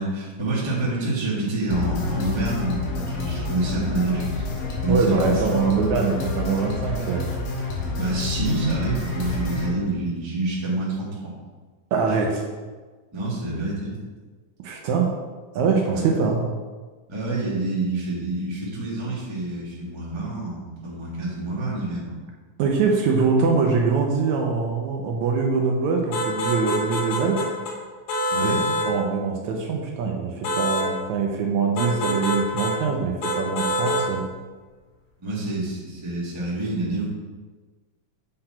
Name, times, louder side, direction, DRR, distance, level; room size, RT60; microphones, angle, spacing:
voice 1, 0.0-5.7 8.0-11.3 13.1-13.9 15.9-16.0 17.1-22.2 28.3-28.7 35.2-37.1, right 2 dB, 15° right, -6 dB, 0.8 m, -27 dB
sound 1, 1.7-9.7, left 3 dB, 85° left, 2.8 m, -28 dB
voice 2, 4.9-7.3 11.9-12.4 14.6-15.1 15.6-16.4 22.6-27.5 28.4-34.2, right 5 dB, 75° right, 1 dB, 1.9 m, -23 dB
sound 2, 26.1-27.7 28.1-28.9 30.4-30.9 31.8-32.8 33.2-34.1, left 1 dB, 65° left, 2.4 m, -25 dB
7.8 x 4.0 x 4.3 m, 1.3 s
omnidirectional pair, 3.6 m